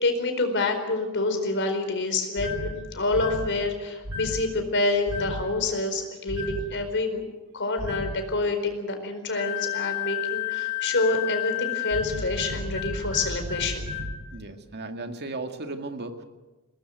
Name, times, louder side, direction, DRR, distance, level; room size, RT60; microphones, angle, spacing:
voice 1, 0.0-7.2 7.5-13.8, left 2 dB, 55° left, 6 dB, 4.5 m, -27 dB
sound 1, 2.4-2.7 3.1-3.5 4.0-4.4 5.1-5.4 6.3-6.6 7.8-8.1 9.4-14.1, left 6 dB, 85° right, 5.3 m, -31 dB
voice 2, 14.3-16.2, right 2 dB, 50° right, 6 dB, 2.1 m, -35 dB
21.5 x 19.0 x 9.2 m, 1.2 s
head